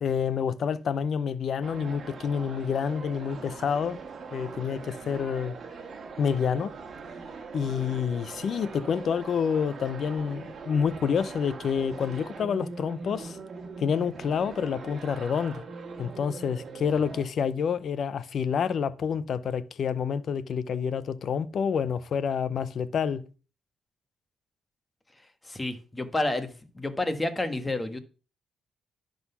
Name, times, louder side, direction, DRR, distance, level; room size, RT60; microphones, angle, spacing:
voice 1, 0.0-4.0 4.3-5.5 6.2-6.7 7.5-13.4 13.8-15.6 16.0-23.2, left 7 dB, 55° left, 0.6 m, -28 dB
sound 1, 1.6-17.3, right 4 dB, 45° right, 1.6 m, -42 dB
voice 2, 25.4-28.0, left 2 dB, 15° left, 1.3 m, -30 dB
11.0 x 4.0 x 5.6 m
cardioid pair, 90°, 0 cm